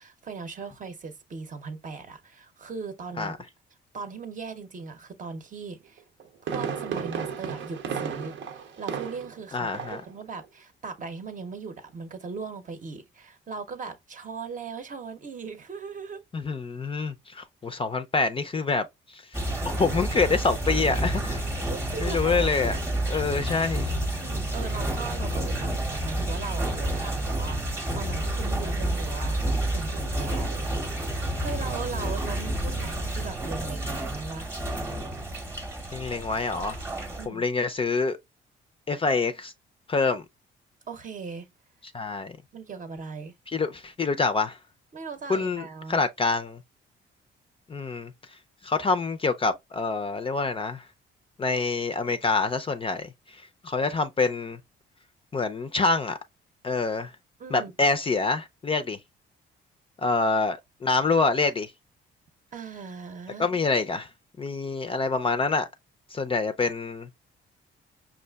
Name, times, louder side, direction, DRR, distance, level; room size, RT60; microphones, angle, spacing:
voice 1, 0.0-3.3 3.9-6.0 6.4-16.2 21.5-22.7 24.2-34.5 37.2-37.4 40.9-41.5 42.5-43.4 44.9-46.0 57.4-57.7 62.5-63.6, right 5 dB, 40° right, 0.7 m, -39 dB
Fireworks, 6.0-9.4 9.7-10.1 10.4-10.5, right 7 dB, 75° right, 0.7 m, -33 dB
voice 2, 9.5-10.0 16.3-19.2 19.6-21.4 22.0-22.8 23.1-23.9 35.9-36.8 37.3-38.2 38.9-39.5 39.9-40.2 41.9-42.4 43.5-44.6 45.3-46.6 47.7-48.1 48.6-50.8 51.4-54.6 55.3-56.2 56.6-57.1 57.5-59.0 60.0-61.7 63.4-64.1 64.4-65.7 66.1-67.1, left 4 dB, 25° left, 0.4 m, -26 dB
sound 1, 19.3-37.3, right 1 dB, 15° right, 0.9 m, -29 dB
5.3 x 2.4 x 2.3 m
cardioid pair, 90°, 20 cm